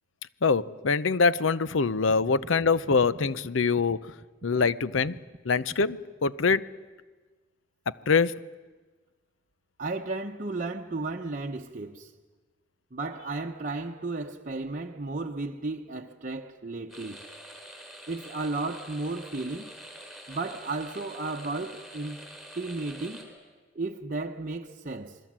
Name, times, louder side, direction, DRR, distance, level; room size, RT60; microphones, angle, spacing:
voice 1, 0.4-4.0 4.4-5.2 5.4-6.7 8.1-8.4, left 4 dB, 90° left, 0.7 m, -24 dB
voice 2, 9.8-12.1 12.9-17.2 18.1-19.8 20.3-22.2 22.6-23.3 23.7-25.2, right 3 dB, 40° right, 0.8 m, -34 dB
sound 1, 16.9-23.2, right 1 dB, ahead, 4.5 m, -46 dB
28.0 x 21.5 x 7.5 m
head